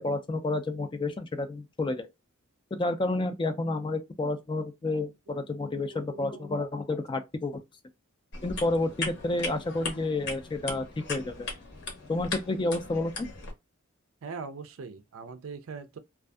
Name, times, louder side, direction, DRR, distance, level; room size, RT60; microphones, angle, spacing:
voice 1, 0.0-2.1 2.7-7.6 8.4-11.5 12.1-13.3, left 2 dB, 25° left, 0.3 m, -30 dB
voice 2, 5.3-6.6 14.2-16.0, right 5 dB, 70° right, 0.4 m, -42 dB
sound 1, 8.3-13.5, left 3 dB, 55° left, 0.8 m, -38 dB
2.5 x 2.4 x 2.3 m
head